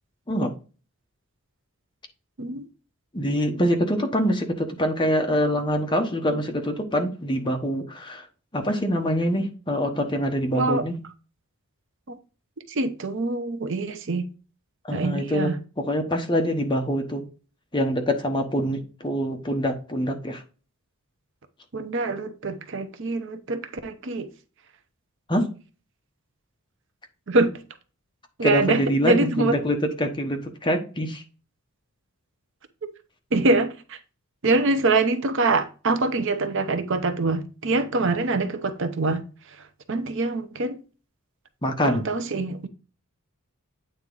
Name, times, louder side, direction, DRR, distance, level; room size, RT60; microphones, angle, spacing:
voice 1, 3.1-8.3 8.5-10.9 14.8-15.5 15.8-17.2 17.7-20.4 25.3-25.5 28.4-31.2 41.6-42.0, equal, 20° left, 1.0 m, -25 dB
voice 2, 12.7-14.3 14.9-15.6 21.7-24.3 27.3-27.5 28.4-29.5 33.3-34.0 34.4-40.8 41.8-42.7, right 3 dB, 55° right, 0.7 m, -24 dB
8.8 x 3.6 x 3.8 m
head